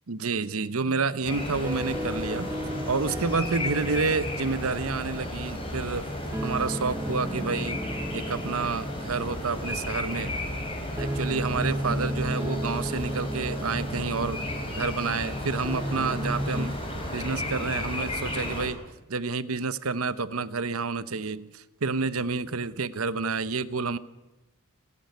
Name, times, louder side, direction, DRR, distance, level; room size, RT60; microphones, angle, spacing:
voice 1, 0.1-2.5 2.9-6.1 6.4-7.8 8.1-10.3 11.0-16.7 17.1-18.8 19.1-24.0, right 4 dB, 75° right, 15 dB, 1.0 m, -29 dB
sound 1, 1.2-18.7, left 1 dB, 25° left, 4.4 m, -34 dB
sound 2, 1.3-16.7, equal, 10° right, 1.1 m, -35 dB
29.5 x 11.0 x 9.5 m, 1.1 s
head